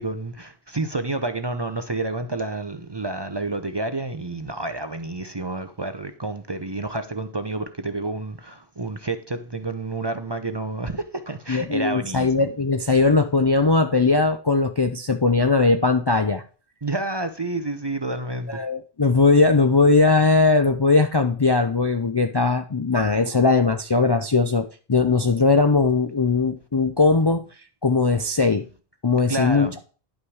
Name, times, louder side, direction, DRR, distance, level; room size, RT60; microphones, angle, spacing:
voice 1, 0.0-12.5 16.8-18.6 29.3-29.8, right 2 dB, 30° right, 0.6 m, -29 dB
voice 2, 11.5-16.4 18.5-27.4 27.8-28.6 29.0-29.7, left 3 dB, 30° left, 0.5 m, -19 dB
10.5 x 5.8 x 4.7 m
omnidirectional pair, 1.1 m